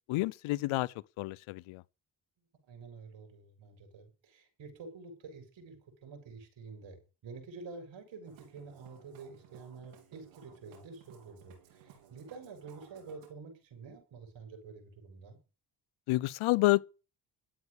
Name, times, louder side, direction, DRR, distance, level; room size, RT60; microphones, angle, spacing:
voice 1, 0.1-1.8 16.1-16.8, left 19 dB, 85° left, 0.7 m, -29 dB
voice 2, 2.7-15.4, right 4 dB, 65° right, 7.1 m, -49 dB
Musical instrument, 8.2-13.3, right 8 dB, 90° right, 3.8 m, -59 dB
13.0 x 8.4 x 6.6 m
supercardioid pair, 65°, 48 cm